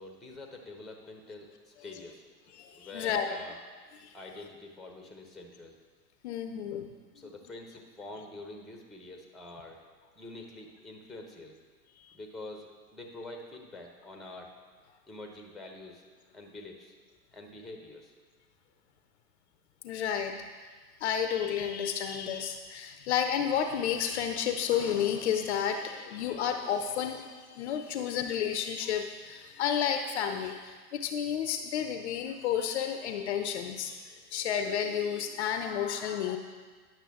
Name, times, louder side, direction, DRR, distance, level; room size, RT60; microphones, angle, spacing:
voice 1, 0.0-2.2 2.7-3.6 4.1-5.8 7.1-9.8 10.2-11.5 12.1-14.5 15.1-16.1 16.3-16.9 17.3-18.1, left 2 dB, ahead, 2 dB, 0.6 m, -46 dB
voice 2, 2.5-3.4 4.0-4.2 6.2-6.9 12.0-12.2 19.8-20.4 21.0-36.4, left 8 dB, 45° left, 7 dB, 0.5 m, -31 dB
10.0 x 6.0 x 3.5 m, 1.5 s
figure-of-eight pair, 105°, 49 cm